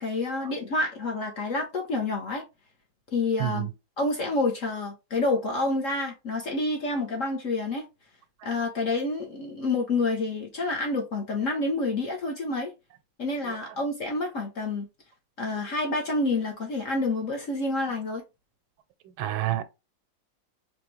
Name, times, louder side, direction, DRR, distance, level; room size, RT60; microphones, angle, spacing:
voice 1, 0.0-2.4 3.1-3.7 4.0-7.8 8.4-12.7 13.2-14.9 15.4-18.2, left 2 dB, 55° left, 0.9 m, -28 dB
voice 2, 19.2-19.6, right 14 dB, 90° right, 1.5 m, -28 dB
4.3 x 3.0 x 3.1 m
omnidirectional pair, 2.1 m